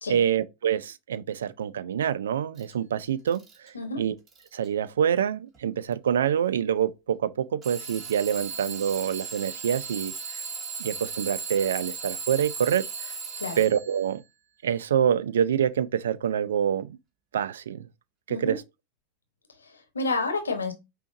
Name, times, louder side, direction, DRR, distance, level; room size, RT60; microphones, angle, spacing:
voice 1, 0.1-4.1 4.5-10.1 10.8-13.1 13.6-14.2 14.6-17.0 17.3-17.9 18.3-18.6, right 9 dB, 75° right, 0.4 m, -26 dB
Alarm / Clock, 2.6-2.7 3.3-3.7 4.3-4.7 5.5-5.6 7.6-14.0, right 5 dB, 30° right, 1.6 m, -37 dB
voice 2, 3.7-4.1 13.4-13.6 18.3-18.6 19.6-20.7, left 3 dB, 90° left, 1.0 m, -30 dB
5.5 x 2.8 x 2.6 m
hypercardioid pair, 95°, 0 cm